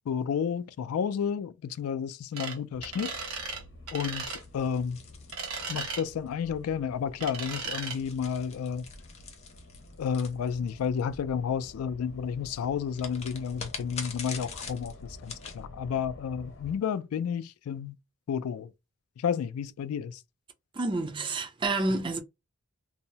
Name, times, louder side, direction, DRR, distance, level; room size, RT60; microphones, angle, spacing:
voice 1, 0.1-3.1 3.9-4.2 4.5-5.0 5.7-8.8 10.0-18.0 18.3-18.7 19.2-20.2, left 7 dB, 85° left, 0.3 m, -31 dB
sound 1, 2.4-2.6 2.8-3.6 3.9-4.4 5.3-6.0 7.2-8.0, right 4 dB, 85° right, 0.9 m, -36 dB
sound 2, 2.7-16.8, left 1 dB, 60° left, 0.8 m, -50 dB
sound 3, 4.3-6.3 7.2-11.0 12.9-15.6, left 5 dB, 30° left, 0.6 m, -44 dB
voice 2, 20.7-22.2, right 2 dB, 25° right, 0.3 m, -29 dB
2.7 x 2.0 x 2.7 m
head